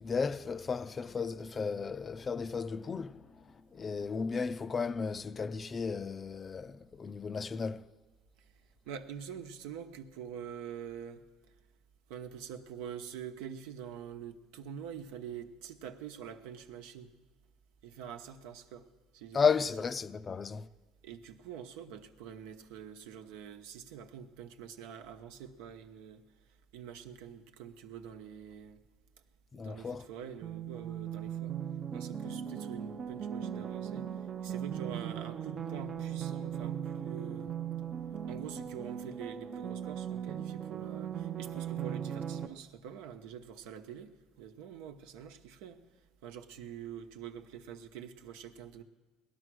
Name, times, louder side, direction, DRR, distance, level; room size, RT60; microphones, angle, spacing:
voice 1, 0.0-7.9 19.3-20.7 29.5-30.1, left 5 dB, 30° left, 0.5 m, -34 dB
voice 2, 8.9-11.2 12.1-17.1 17.8-18.9 19.1-19.4 21.0-26.2 26.7-28.8 29.6-31.6 31.9-34.1 34.4-37.5 38.3-45.8 46.2-48.8, right 8 dB, 85° right, 1.0 m, -45 dB
sound 1, 30.4-42.5, right 9 dB, 40° right, 0.6 m, -38 dB
19.0 x 11.5 x 6.2 m
supercardioid pair, 105°, 0 cm